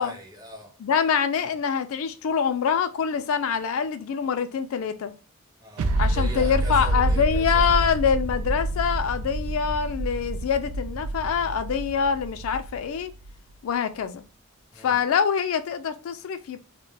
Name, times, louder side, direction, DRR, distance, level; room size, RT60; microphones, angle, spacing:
voice 1, 0.0-0.8 5.6-7.9 14.7-15.0, equal, 20° right, 0.6 m, -41 dB
voice 2, 0.8-5.1 6.0-13.1 13.6-14.2 14.8-16.6, left 7 dB, 70° left, 0.3 m, -25 dB
sound 1, 5.8-13.3, right 2 dB, 80° right, 0.3 m, -27 dB
2.3 x 2.1 x 3.2 m
head